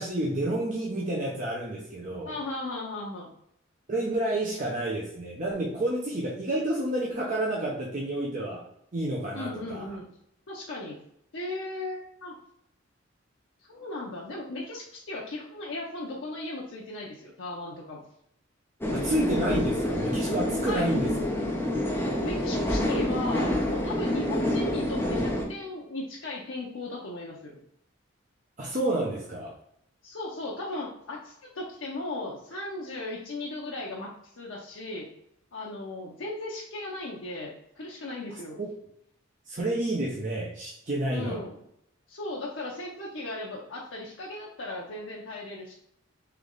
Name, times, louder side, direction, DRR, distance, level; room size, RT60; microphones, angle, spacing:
voice 1, 0.0-2.4 3.9-8.7 8.9-9.8 18.9-21.1 28.6-29.5 38.3-38.7 39.5-41.4, right 1 dB, 40° right, -3 dB, 0.6 m, -30 dB
voice 2, 2.3-3.3 9.3-10.1 10.5-11.0 11.3-12.4 13.7-18.0 20.7-20.9 22.2-27.6 30.0-35.1 35.5-38.6 41.1-41.6 42.1-45.7, left 2 dB, 75° left, -3 dB, 0.7 m, -36 dB
sound 1, 18.8-25.4, left 1 dB, 10° left, 0.6 m, -27 dB
3.3 x 3.1 x 3.7 m, 0.75 s
head